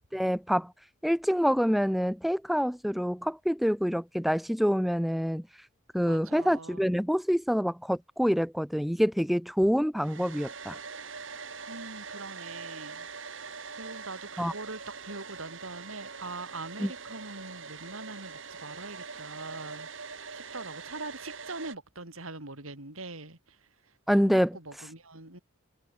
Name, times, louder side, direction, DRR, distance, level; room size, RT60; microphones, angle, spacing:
voice 1, 0.1-0.7 1.0-5.4 5.9-10.8 14.4-14.5 16.8-16.9 24.1-24.5, equal, ahead, 1.1 m, -26 dB
voice 2, 6.1-6.8 11.7-13.1 13.8-23.6 24.1-25.4, right 2 dB, 85° right, 6.1 m, -42 dB
Domestic sounds home sounds, 10.0-21.8, right 5 dB, 65° right, 4.5 m, -43 dB
head